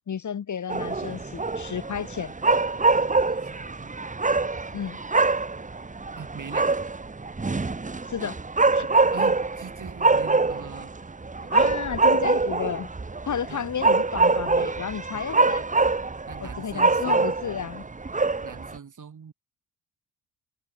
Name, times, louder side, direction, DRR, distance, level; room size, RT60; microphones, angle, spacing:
voice 1, 0.1-2.3 4.7-5.0 8.1-8.4 8.7-8.9 11.5-12.9 13.3-15.6 16.4-17.9, left 7 dB, 45° left, 1.7 m, -32 dB
sound 1, 0.7-18.8, right 3 dB, 20° right, 1.5 m, -24 dB
voice 2, 3.1-3.9 6.1-6.7 9.1-11.8 13.5-13.9 15.1-15.4 16.3-17.3 18.4-19.3, right 6 dB, 45° right, 5.7 m, -43 dB
open air
hypercardioid pair, 50°, 41 cm